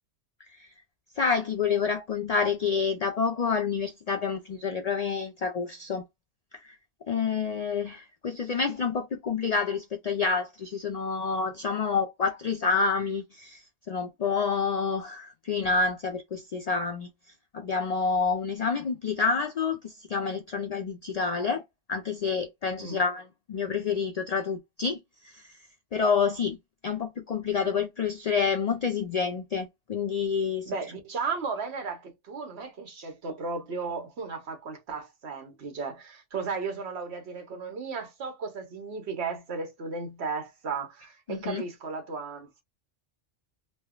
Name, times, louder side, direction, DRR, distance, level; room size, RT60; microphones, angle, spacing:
voice 1, 1.2-6.0 7.1-13.6 13.9-17.1 17.5-21.6 21.9-25.0 25.2-25.4 25.9-26.6 26.8-30.7 41.3-41.6, left 5 dB, 80° left, 0.3 m, -28 dB
voice 2, 30.7-42.6, right 4 dB, 65° right, 1.2 m, -35 dB
3.2 x 2.2 x 2.2 m
omnidirectional pair, 1.2 m